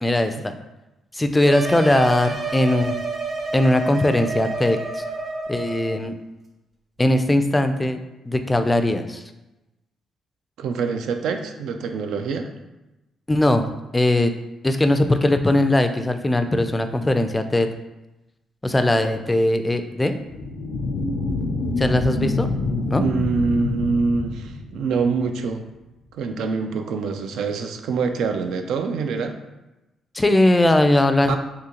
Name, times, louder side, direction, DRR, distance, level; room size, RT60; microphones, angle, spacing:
voice 1, 0.0-0.5 1.1-3.0 3.5-5.0 5.5-6.1 7.0-8.0 8.3-9.2 13.3-14.3 14.6-17.7 18.6-20.2 21.8-22.5 22.8-23.1 30.1-31.4, left 1 dB, 15° left, 8 dB, 0.3 m, -20 dB
sound 1, 1.4-5.9, right 3 dB, 40° right, 0.7 m, -29 dB
voice 2, 10.6-12.5 23.0-25.6 26.1-29.4 31.3-31.4, right 4 dB, 80° right, 6 dB, 0.3 m, -25 dB
sound 2, 20.2-25.2, left 2 dB, 85° left, 0.4 m, -26 dB
3.7 x 2.7 x 2.9 m, 1.0 s
cardioid pair, 80°, 0 cm